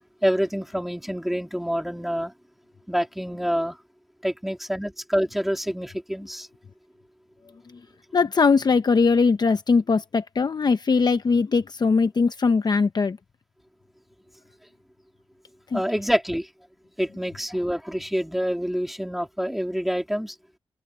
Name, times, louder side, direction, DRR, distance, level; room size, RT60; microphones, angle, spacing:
voice 1, 0.2-2.3 2.9-3.8 4.2-6.5 15.7-16.5 17.0-20.4, equal, ahead, 3.5 m, -26 dB
voice 2, 8.1-13.2 15.7-15.8, left 4 dB, 45° left, 0.8 m, -20 dB
wide cardioid pair, 110°, 10 cm